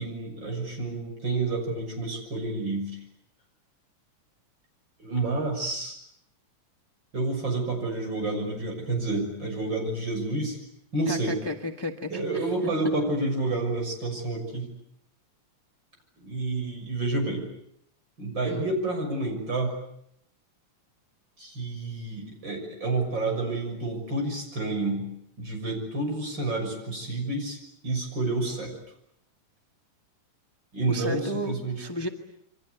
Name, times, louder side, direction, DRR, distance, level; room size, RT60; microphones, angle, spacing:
voice 1, 0.0-2.9 5.0-6.0 7.1-10.6 10.9-11.4 12.1-14.7 16.2-17.4 18.2-19.7 21.4-25.0 25.4-27.6 27.8-28.7 30.7-31.2 31.5-31.8, right 2 dB, 35° right, 3 dB, 7.1 m, -29 dB
voice 2, 11.1-12.5 18.4-18.7 30.9-32.1, left 1 dB, 20° left, 5 dB, 0.6 m, -33 dB
28.0 x 24.5 x 8.1 m, 0.73 s
omnidirectional pair, 3.5 m